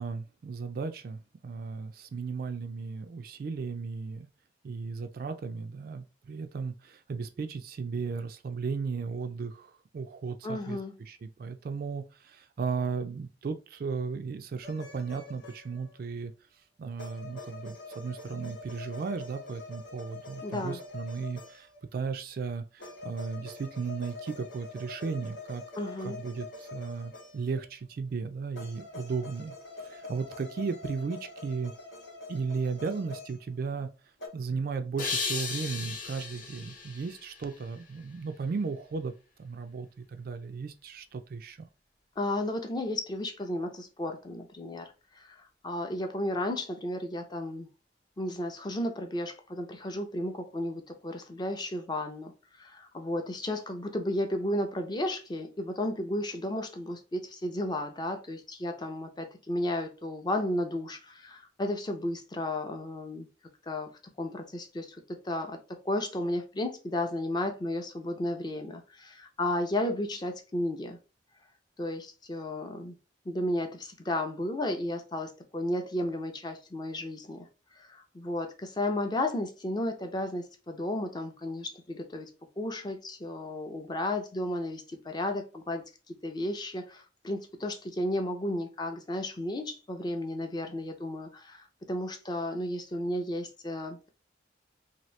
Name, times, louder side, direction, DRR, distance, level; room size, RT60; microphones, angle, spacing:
voice 1, 0.0-4.3 4.6-10.8 11.1-16.3 16.8-25.6 26.0-29.5 29.8-31.7 32.3-33.9 34.3-39.1 39.4-41.6, right 5 dB, 50° right, 0.3 m, -35 dB
voice 2, 10.4-10.9 20.4-20.8 25.8-26.2 42.2-47.7 48.2-52.3 52.6-63.3 63.6-63.9 64.2-71.0 71.8-73.0 73.3-77.5 77.8-82.3 82.6-94.1, left 1 dB, 25° left, 0.5 m, -33 dB
sound 1, 14.6-16.0 17.0-21.9 22.8-27.7 28.5-33.9 34.2-34.3, left 3 dB, 80° left, 1.0 m, -45 dB
sound 2, 35.0-38.1, left 4 dB, 45° left, 0.8 m, -36 dB
2.8 x 2.6 x 3.1 m
head